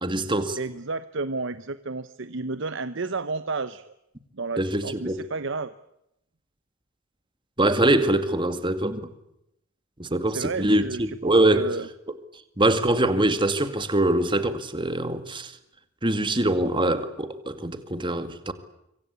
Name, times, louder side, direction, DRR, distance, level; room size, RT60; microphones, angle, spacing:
voice 1, 0.0-0.6 4.6-5.2 7.6-9.1 10.0-11.7 12.1-12.2 12.6-15.5 16.0-18.5, right 1 dB, 25° right, 2.1 m, -23 dB
voice 2, 0.6-3.9 4.3-5.7 10.3-11.9, right 3 dB, 65° right, 0.9 m, -32 dB
25.5 x 25.0 x 8.3 m
head